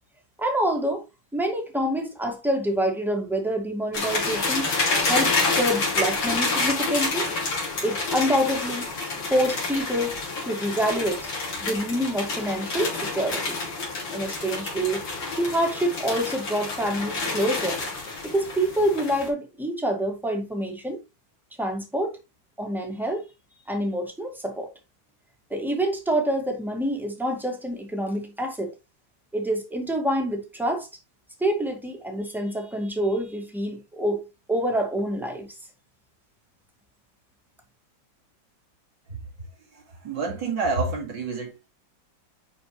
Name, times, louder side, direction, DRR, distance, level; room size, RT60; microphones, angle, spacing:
voice 1, 0.4-1.0 1.3-4.7 5.1-7.3 7.8-8.9 9.3-10.2 10.4-11.2 11.6-13.6 14.1-15.0 15.4-17.8 18.2-21.0 21.6-22.2 22.6-23.3 23.7-24.7 25.5-28.7 29.3-30.9 31.4-34.2 34.5-35.5, right 1 dB, ahead, 1.8 m, -26 dB
sound 1, 3.9-19.3, left 3 dB, 85° left, 3.4 m, -28 dB
voice 2, 39.7-41.5, right 3 dB, 70° right, 3.1 m, -28 dB
9.8 x 4.7 x 3.2 m
omnidirectional pair, 2.0 m